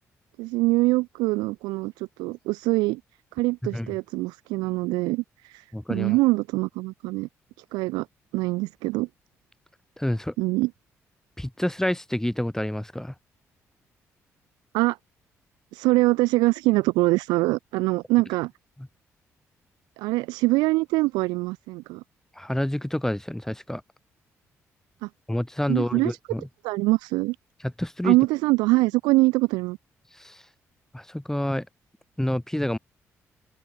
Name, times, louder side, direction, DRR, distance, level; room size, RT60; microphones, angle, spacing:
voice 1, 0.4-3.0 3.4-7.3 7.7-8.1 8.3-9.1 10.4-10.7 14.7-15.0 15.7-18.5 20.0-22.0 25.0-25.1 25.7-26.2 26.6-27.4 28.0-29.8, right 22 dB, 75° right, 0.7 m, -23 dB
voice 2, 3.6-4.0 5.7-6.2 10.0-10.3 11.4-13.1 18.8-18.9 22.4-23.8 25.3-26.5 27.6-28.2 30.1-30.4 30.9-31.7 32.2-32.8, left 1 dB, 5° left, 4.2 m, -28 dB
open air
hypercardioid pair, 45°, 7 cm